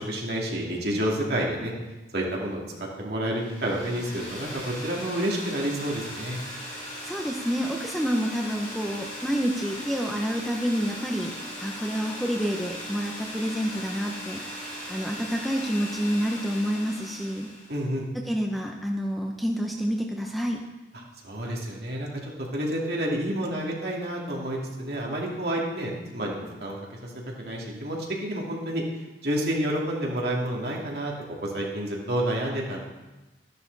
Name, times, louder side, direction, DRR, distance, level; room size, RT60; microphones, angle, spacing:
voice 1, 0.0-1.7 2.1-6.4 17.7-18.1 21.2-26.8 27.0-27.1 27.4-28.8 29.2-31.1 31.4-32.8, right 1 dB, 60° right, -3 dB, 2.5 m, -29 dB
sound 1, 3.3-17.8, equal, 30° left, 3.3 m, -38 dB
voice 2, 7.0-11.3 11.6-17.5 18.1-20.6, equal, ahead, 1 dB, 0.8 m, -28 dB
12.5 x 11.0 x 4.0 m, 1.1 s
head